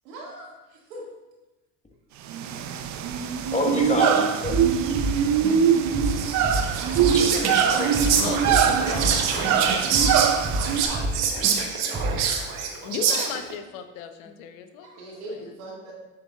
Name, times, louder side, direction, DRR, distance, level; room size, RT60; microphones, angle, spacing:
voice 1, 0.0-1.1 9.3-10.3 14.8-15.9, right 1 dB, 85° right, -3 dB, 2.0 m, -40 dB
sound 1, 2.3-10.9, right 8 dB, 45° right, 0.6 m, -23 dB
voice 2, 3.5-4.6 7.1-8.0 11.6-11.7, left 2 dB, 15° left, 0 dB, 1.4 m, -28 dB
Drum kit / Drum, 4.4-4.7 4.9-5.7 5.9-6.2 6.4-9.6 9.9-11.2 11.4-11.6 11.9-12.3, right 1 dB, 25° right, 1.7 m, -28 dB
Whispering, 6.0-13.5, right 6 dB, 65° right, 1.0 m, -26 dB
voice 3, 8.2-9.7 12.8-14.9 15.3-15.5, left 7 dB, 80° left, 8 dB, 0.7 m, -36 dB
7.0 x 6.7 x 2.4 m, 1.1 s
hypercardioid pair, 75°, 40 cm